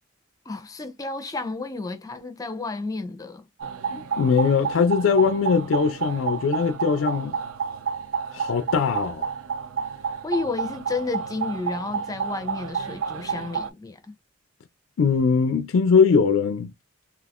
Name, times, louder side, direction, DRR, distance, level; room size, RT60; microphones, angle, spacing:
voice 1, 0.5-3.4 10.2-14.1, left 3 dB, 15° left, 0.5 m, -31 dB
sound 1, 3.6-13.7, right 6 dB, 85° right, 0.4 m, -30 dB
voice 2, 3.9-7.4 8.3-9.3 15.0-16.7, left 5 dB, 75° left, 0.4 m, -21 dB
2.4 x 2.4 x 3.4 m
head